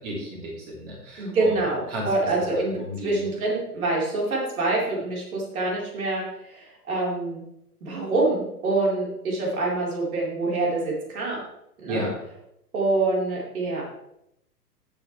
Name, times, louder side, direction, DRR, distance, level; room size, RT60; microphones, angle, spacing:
voice 1, 0.0-1.5 1.9-2.1 2.8-3.2 11.9-12.1, equal, 35° right, -4 dB, 3.4 m, -33 dB
voice 2, 1.2-7.4 7.8-11.4 11.8-12.0 12.7-13.8, right 2 dB, 60° right, -3 dB, 4.3 m, -26 dB
17.5 x 6.9 x 3.3 m, 0.80 s
figure-of-eight pair, 120°, 48 cm